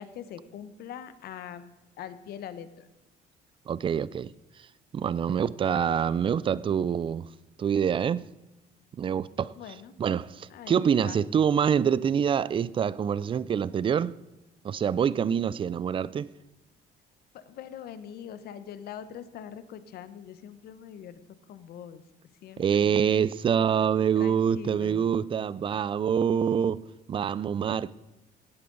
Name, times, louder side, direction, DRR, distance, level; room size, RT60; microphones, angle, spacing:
voice 1, 0.0-1.6 2.0-2.9 9.6-9.9 10.5-11.2 17.3-21.2 21.5-22.0 22.4-23.0 24.0-25.0, left 9 dB, 65° left, 1.0 m, -43 dB
voice 2, 3.7-4.3 4.9-7.3 7.6-8.3 8.9-9.6 10.0-14.2 14.6-16.3 22.6-28.0, right 8 dB, 30° right, 0.4 m, -26 dB
16.0 x 8.5 x 3.9 m
cardioid pair, 110°, 17 cm